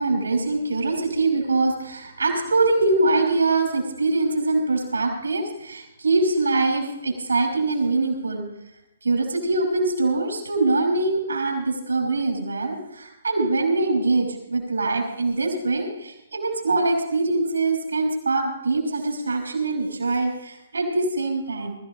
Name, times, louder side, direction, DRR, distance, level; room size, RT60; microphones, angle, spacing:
voice 1, 0.0-8.4 9.0-21.8, right 3 dB, 75° right, 2 dB, 5.7 m, -23 dB
23.0 x 14.5 x 3.1 m, 0.88 s
figure-of-eight pair, 125°, 0 cm